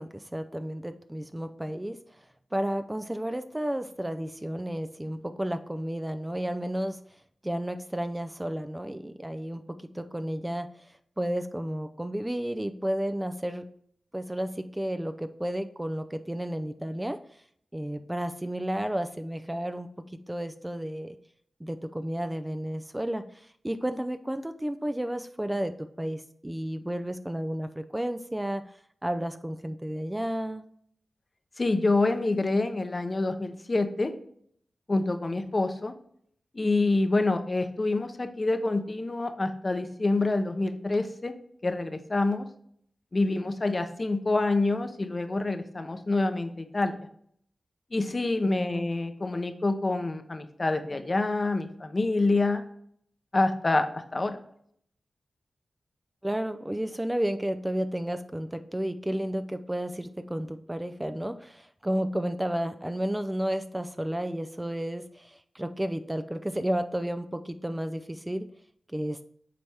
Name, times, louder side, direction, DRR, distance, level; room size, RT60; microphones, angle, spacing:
voice 1, 0.0-2.0 2.5-7.0 7.4-10.7 11.2-13.7 14.1-17.2 17.7-21.2 21.6-28.7 29.0-30.6 48.5-48.8 56.2-68.5 68.9-69.3, right 1 dB, 15° right, 9 dB, 0.5 m, -32 dB
voice 2, 31.6-34.1 34.9-35.9 36.5-41.3 41.6-42.4 43.1-47.0 47.9-52.6 53.3-54.4, left 2 dB, 45° left, 7 dB, 0.8 m, -27 dB
7.6 x 4.2 x 3.4 m, 0.66 s
cardioid pair, 50°, 0 cm